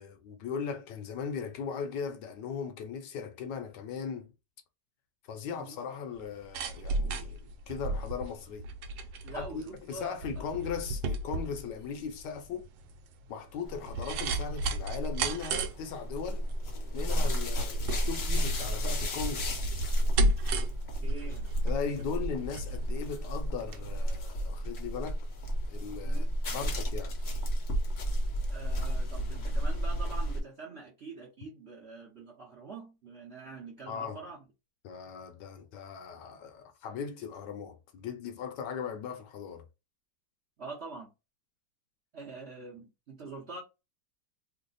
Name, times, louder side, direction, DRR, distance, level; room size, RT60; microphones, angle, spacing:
voice 1, 0.0-4.3 5.3-8.7 9.3-12.7 13.3-16.5 16.9-19.7 21.6-25.2 25.7-27.1 33.9-34.2 34.8-39.6, left 6 dB, 75° left, 1.2 m, -38 dB
voice 2, 5.5-5.8 9.2-10.5 21.0-21.5 26.0-26.3 28.5-34.4 40.6-41.1 42.1-43.6, right 4 dB, 55° right, 0.7 m, -45 dB
sound 1, 6.2-23.8 24.1-24.2, right 2 dB, 85° right, 1.3 m, -35 dB
sound 2, 13.7-30.4, equal, 55° left, 0.7 m, -32 dB
3.2 x 2.0 x 3.9 m
omnidirectional pair, 2.0 m